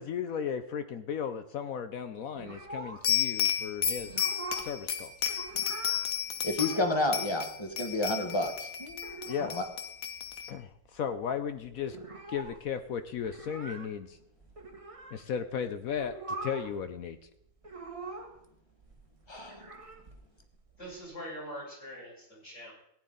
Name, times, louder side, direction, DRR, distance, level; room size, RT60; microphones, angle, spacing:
voice 1, 0.0-4.2 4.6-5.1 9.3-9.5 10.5-12.0 12.3-14.2 15.1-16.1 16.4-17.2, left 7 dB, 70° left, 10 dB, 0.8 m, -35 dB
sound 1, 2.4-3.3 3.6-3.7 4.0-4.8 5.1-6.0 6.5-7.1 7.4-7.5 7.7-8.5 8.9-9.7 10.0-10.1 10.3-10.9 11.2-11.3 11.5-15.2 15.8-16.8 17.1-18.5 18.8-21.0, right 3 dB, 20° right, 1.0 m, -43 dB
sound 2, 3.0-6.8 7.1-10.5, left 9 dB, 55° left, 1.2 m, -32 dB
voice 2, 6.4-9.2 9.5-9.6 19.3-19.6, left 2 dB, 15° left, 5 dB, 1.1 m, -31 dB
voice 3, 20.8-22.7, equal, 35° left, -5 dB, 6.3 m, -43 dB
15.5 x 10.0 x 3.9 m, 0.78 s
omnidirectional pair, 2.1 m